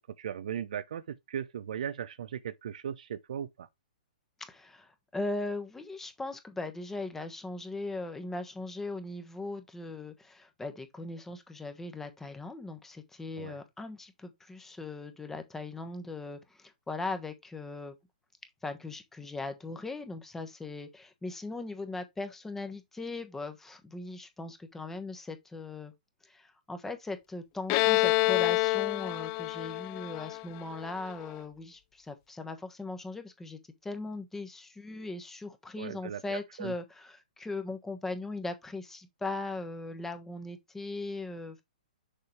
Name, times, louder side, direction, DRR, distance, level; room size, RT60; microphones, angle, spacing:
voice 1, 0.2-3.7 13.4-13.6 35.8-36.7, right 9 dB, 65° right, 0.6 m, -38 dB
voice 2, 4.5-17.9 18.6-25.9 26.2-41.6, left 3 dB, 10° left, 1.2 m, -39 dB
Bowed string instrument, 27.7-31.2, left 23 dB, 35° left, 0.3 m, -28 dB
6.6 x 5.3 x 3.2 m
hypercardioid pair, 125°, 4 cm